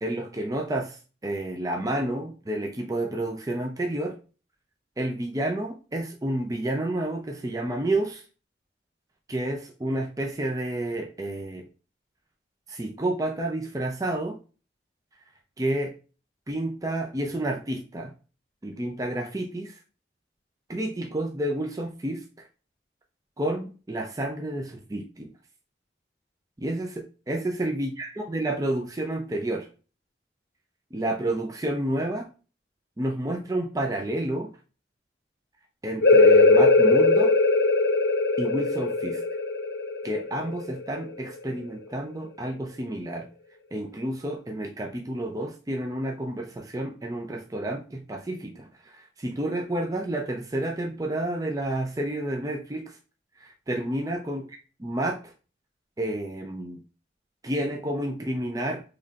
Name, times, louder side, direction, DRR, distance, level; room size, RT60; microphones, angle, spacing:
voice 1, 0.0-4.2 5.0-8.2 9.3-11.7 12.7-14.4 15.6-15.9 16.5-18.1 18.6-19.8 20.7-22.2 23.4-25.3 26.6-29.7 30.9-32.3 33.0-34.5 35.8-37.3 38.4-39.2 40.0-43.3 43.7-53.0 53.4-54.4 54.8-55.2 56.0-56.8 57.4-58.8, right 1 dB, 20° right, 2 dB, 0.4 m, -30 dB
sound 1, 36.0-41.4, left 3 dB, 60° left, 0.7 m, -20 dB
4.1 x 3.1 x 2.4 m, 0.35 s
head